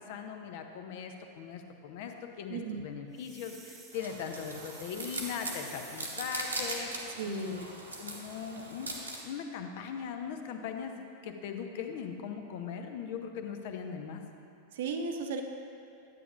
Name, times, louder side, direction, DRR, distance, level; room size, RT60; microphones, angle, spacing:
voice 1, 0.0-7.7 8.0-8.9 9.2-14.2, left 7 dB, 50° left, 5 dB, 0.6 m, -40 dB
voice 2, 2.5-2.9 7.2-7.6 14.7-15.4, right 5 dB, 55° right, 5 dB, 0.6 m, -35 dB
sound 1, 3.1-6.8, right 4 dB, 20° right, 0.8 m, -52 dB
sound 2, 3.9-9.2, right 2 dB, 80° right, 1.0 m, -40 dB
9.2 x 8.9 x 2.5 m, 2.5 s
figure-of-eight pair, 90°, 0 cm